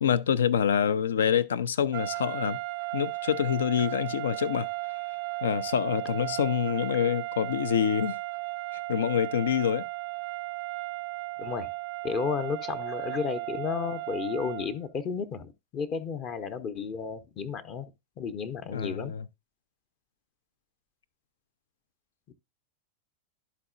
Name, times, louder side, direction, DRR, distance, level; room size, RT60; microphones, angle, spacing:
voice 1, 0.0-2.6 2.9-4.7 5.4-8.2 8.9-9.8 18.7-19.3, left 8 dB, 65° left, 0.4 m, -26 dB
sound 1, 1.9-14.8, right 23 dB, 45° right, 0.3 m, -35 dB
voice 2, 11.4-11.7 12.0-17.9 18.2-19.1 22.3-22.4, left 6 dB, 35° left, 0.7 m, -33 dB
12.0 x 4.2 x 2.5 m
figure-of-eight pair, 90°, 0 cm